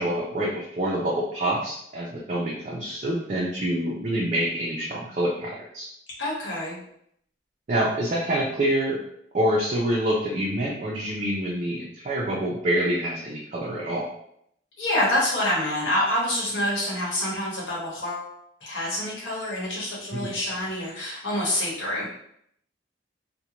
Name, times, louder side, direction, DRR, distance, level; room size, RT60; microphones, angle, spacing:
voice 1, 0.0-5.9 7.7-9.0 9.3-14.1 20.1-20.3, right 1 dB, 40° right, -4 dB, 0.4 m, -26 dB
voice 2, 6.2-6.8 14.8-18.3 18.6-22.1, left 1 dB, 85° left, -5 dB, 1.0 m, -27 dB
2.5 x 2.1 x 2.9 m, 0.71 s
head